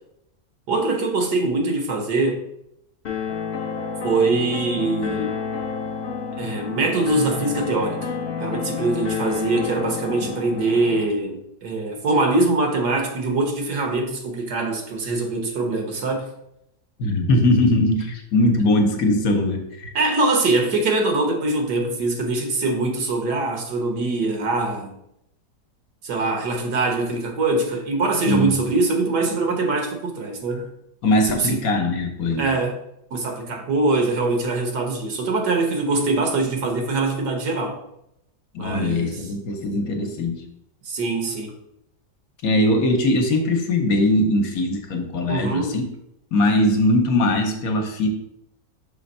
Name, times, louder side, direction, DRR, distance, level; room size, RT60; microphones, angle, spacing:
voice 1, 0.7-2.4 4.0-5.3 6.4-8.1 8.4-16.3 19.9-24.9 26.0-30.7 31.2-31.6 32.4-32.7 33.1-37.8 38.6-39.2 40.8-41.5 45.3-45.8, right 2 dB, 80° right, 2 dB, 1.7 m, -23 dB
sound 1, 3.0-11.1, left 6 dB, 50° left, 0.8 m, -29 dB
voice 2, 17.0-19.9 28.3-28.5 31.0-32.5 38.5-40.4 42.4-45.9 46.3-48.1, left 1 dB, 65° left, 3 dB, 1.2 m, -20 dB
5.7 x 3.4 x 5.3 m, 0.80 s
omnidirectional pair, 1.7 m